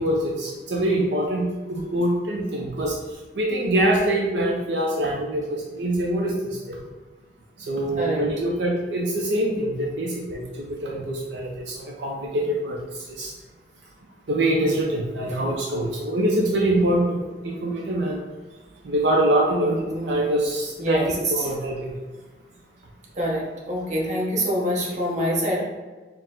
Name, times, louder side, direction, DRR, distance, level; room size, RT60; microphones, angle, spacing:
voice 1, 0.0-6.8 7.6-13.3 14.3-18.2 18.8-19.8 20.0-21.0 21.3-22.0 24.9-25.0, right 1 dB, 75° right, -2 dB, 0.5 m, -24 dB
voice 2, 15.3-15.6 19.5-20.2 20.8-21.5 23.2-25.6, equal, 45° right, -3 dB, 0.9 m, -26 dB
4.6 x 2.1 x 3.7 m, 1.3 s
head